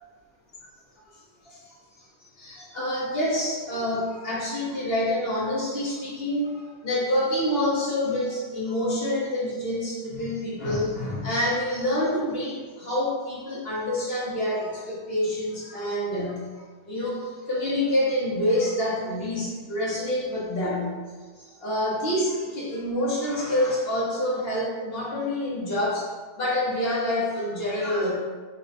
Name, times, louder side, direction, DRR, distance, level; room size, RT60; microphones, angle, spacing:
voice 1, 2.4-16.4 16.9-21.0 21.4-26.1 26.4-28.1, left 1 dB, 40° left, -6 dB, 1.2 m, -27 dB
4.3 x 2.3 x 4.0 m, 1.4 s
omnidirectional pair, 1.7 m